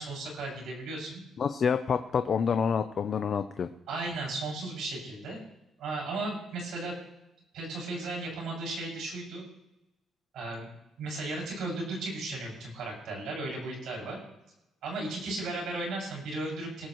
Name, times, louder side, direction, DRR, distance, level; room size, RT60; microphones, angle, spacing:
voice 1, 0.0-1.2 3.9-5.4 5.8-6.9 7.5-9.5 10.3-10.7 11.0-14.2 14.8-16.9, right 2 dB, 70° right, -1 dB, 6.2 m, -35 dB
voice 2, 1.4-3.7, left 6 dB, 35° left, 9 dB, 0.5 m, -27 dB
20.0 x 12.5 x 3.1 m, 0.92 s
cardioid pair, 170°, 0 cm